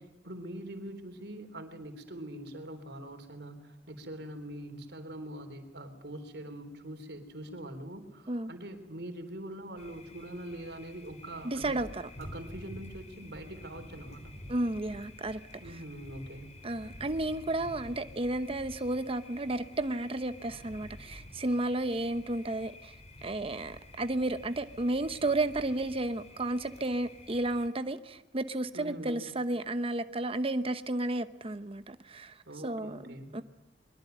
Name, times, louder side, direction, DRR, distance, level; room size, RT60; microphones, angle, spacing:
voice 1, 0.0-11.8 12.2-14.4 15.6-16.6 28.7-29.3 32.5-33.4, right 1 dB, 65° right, 3.7 m, -43 dB
Thunder, 9.8-27.7, left 1 dB, 40° left, 4.2 m, -50 dB
voice 2, 11.4-12.1 14.5-15.4 15.7-15.8 16.6-22.9 23.2-33.4, right 2 dB, 30° right, 0.9 m, -32 dB
23.0 x 22.5 x 9.2 m
head